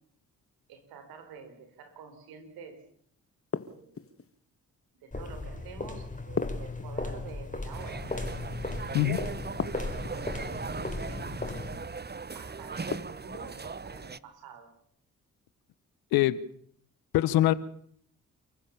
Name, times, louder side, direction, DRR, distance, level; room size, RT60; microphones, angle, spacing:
voice 1, 0.7-2.8 3.6-4.2 5.0-8.3 9.6-11.3 12.3-14.7, right 6 dB, 90° right, 8 dB, 4.3 m, -48 dB
sound 1, 3.5-4.3 6.4-7.4 9.6-10.3 12.9-13.5, left 5 dB, 40° left, 1.7 m, -36 dB
sound 2, 5.1-11.9, left 2 dB, 20° left, 4.9 m, -37 dB
sound 3, 7.7-14.2, right 4 dB, 30° right, 1.1 m, -38 dB
voice 2, 17.1-17.5, left 14 dB, 90° left, 18 dB, 1.0 m, -23 dB
29.5 x 15.0 x 7.1 m, 0.66 s
supercardioid pair, 45°, 35 cm